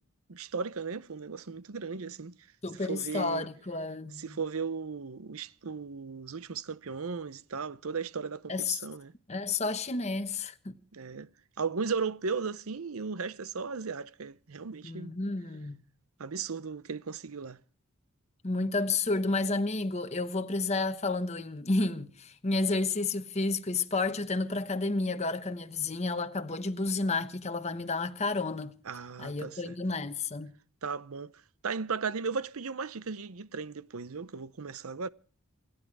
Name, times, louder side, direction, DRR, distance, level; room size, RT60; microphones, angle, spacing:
voice 1, 0.3-2.4 2.8-3.5 4.1-9.1 10.9-11.3 11.6-15.2 16.2-17.6 28.8-29.8 30.8-31.3 31.6-35.1, right 5 dB, 70° right, 0.7 m, -36 dB
voice 2, 2.6-4.4 8.5-8.8 9.3-10.7 14.8-15.8 18.4-28.8 29.2-30.5, left 3 dB, 30° left, 1.0 m, -31 dB
27.5 x 10.5 x 4.8 m
head